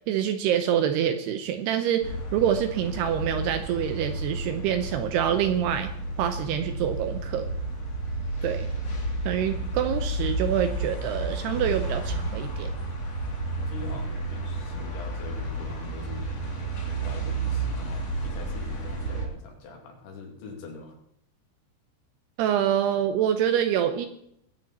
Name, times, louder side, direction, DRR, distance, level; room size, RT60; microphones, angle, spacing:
voice 1, 0.1-5.9 6.2-7.5 8.4-8.7 9.3-12.7 22.4-24.1, right 9 dB, 80° right, 9 dB, 2.5 m, -26 dB
sound 1, 2.0-19.3, right 2 dB, 40° left, 3.4 m, -31 dB
voice 2, 7.2-7.5 13.3-16.3 16.9-21.0, left 4 dB, 75° left, 1 dB, 4.9 m, -43 dB
21.5 x 8.9 x 4.3 m, 0.73 s
omnidirectional pair, 5.3 m